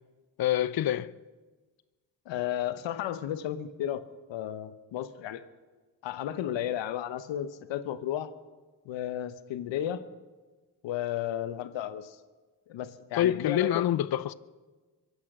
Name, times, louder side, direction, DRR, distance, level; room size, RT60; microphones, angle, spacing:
voice 1, 0.4-1.1 13.2-14.3, left 12 dB, 55° left, 0.6 m, -26 dB
voice 2, 2.3-4.0 4.3-5.4 6.0-8.3 8.8-10.1 10.8-12.2 12.7-13.9, left 11 dB, 85° left, 0.9 m, -33 dB
23.5 x 8.4 x 6.0 m
supercardioid pair, 50°, 44 cm